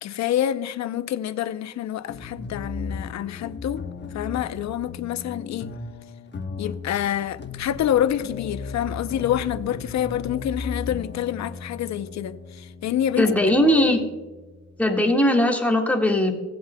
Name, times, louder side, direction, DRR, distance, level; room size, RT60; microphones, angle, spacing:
voice 1, 0.0-3.9 4.1-5.7 6.6-14.1, left 11 dB, 65° left, 0.7 m, -27 dB
sound 1, 2.1-14.9, left 4 dB, 35° left, 1.1 m, -36 dB
voice 2, 13.2-14.0 14.8-16.3, left 1 dB, 5° left, 1.7 m, -19 dB
17.5 x 7.8 x 2.2 m
cardioid pair, 90°, 30 cm